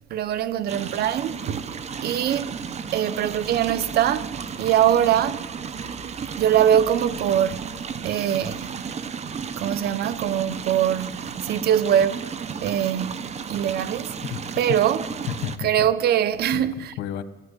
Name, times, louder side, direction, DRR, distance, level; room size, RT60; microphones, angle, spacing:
voice 1, 0.1-1.7 2.0-2.5 2.9-5.5 6.2-8.8 9.6-12.3 12.6-14.1 14.6-15.0 15.6-16.9, right 10 dB, 70° right, 1.1 m, -23 dB
sound 1, 0.7-15.6, right 6 dB, 40° right, 1.4 m, -34 dB
voice 2, 14.2-14.8 15.3-15.9 16.5-17.2, left 10 dB, 80° left, 1.7 m, -32 dB
25.5 x 15.5 x 9.9 m
cardioid pair, 110°, 17 cm